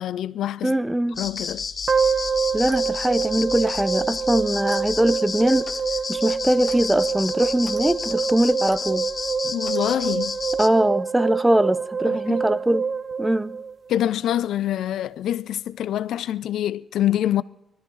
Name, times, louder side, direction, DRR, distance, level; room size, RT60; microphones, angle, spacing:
voice 1, 0.0-0.8 1.2-1.6 9.4-10.4 12.0-12.4 13.9-17.4, left 11 dB, 90° left, 0.4 m, -25 dB
voice 2, 0.6-1.2 2.5-5.7 6.1-9.1 10.6-12.9 13.2-13.6, right 1 dB, 10° right, 0.7 m, -21 dB
sound 1, 1.2-10.7, left 5 dB, 50° left, 0.9 m, -31 dB
sound 2, 1.9-14.1, right 6 dB, 50° right, 0.8 m, -26 dB
Clock, 2.5-2.9 3.6-3.9 4.6-4.8 5.6-5.9 6.6-6.8 7.6-7.9 8.6-8.8 9.6-9.9, left 2 dB, 15° left, 1.3 m, -44 dB
19.5 x 13.5 x 4.0 m
cardioid pair, 85°, 0 cm